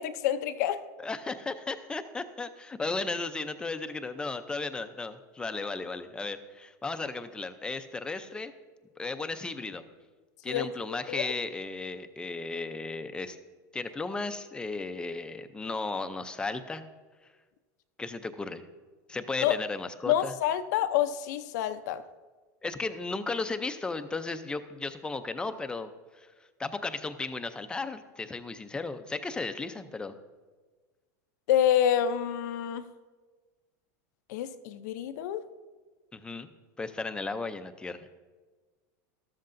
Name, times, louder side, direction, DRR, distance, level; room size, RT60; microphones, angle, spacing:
voice 1, 0.0-0.8 10.5-10.7 11.1-11.3 19.4-19.6 20.1-22.0 31.5-32.8 34.3-35.4, left 10 dB, 70° left, 0.6 m, -27 dB
voice 2, 1.0-8.5 9.0-9.8 10.4-13.4 13.7-16.8 18.0-18.6 19.1-20.3 22.6-25.9 26.1-26.3 26.6-30.2 36.1-36.5 36.8-38.2, left 3 dB, 10° left, 0.5 m, -35 dB
13.0 x 13.0 x 2.6 m
supercardioid pair, 145°, 10 cm